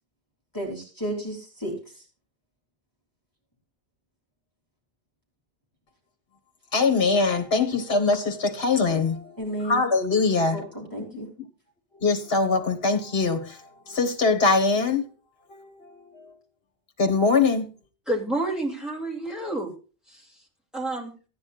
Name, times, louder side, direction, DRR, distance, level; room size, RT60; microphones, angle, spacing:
voice 1, 0.5-1.7 9.4-9.8 10.5-11.3, right 1 dB, 15° left, 3.3 m, -32 dB
voice 2, 6.7-9.3 9.6-10.7 11.0-11.1 12.0-13.6 13.9-15.1 15.5-16.3 17.0-17.7, left 4 dB, 60° left, 1.8 m, -23 dB
voice 3, 18.1-19.7 20.1-20.3 20.7-21.1, right 2 dB, ahead, 2.8 m, -29 dB
15.5 x 9.7 x 2.5 m
omnidirectional pair, 1.2 m